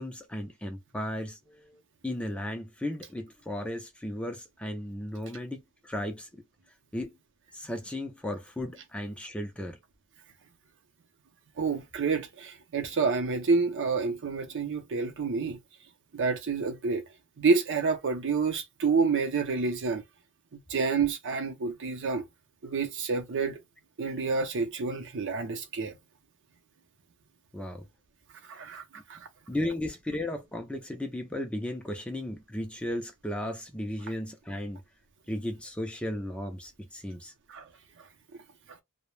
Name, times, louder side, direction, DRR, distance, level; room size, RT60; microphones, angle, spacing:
voice 1, 0.0-6.4 6.9-7.2 7.5-9.8 27.5-27.9 29.5-34.8 35.3-37.3, left 1 dB, 5° left, 0.4 m, -35 dB
voice 2, 11.6-15.6 16.1-17.0 17.4-20.0 20.5-22.2 22.6-23.6 24.0-26.0 28.5-28.8 29.1-29.3 37.5-37.7, right 4 dB, 55° right, 0.6 m, -28 dB
2.2 x 2.1 x 3.1 m
head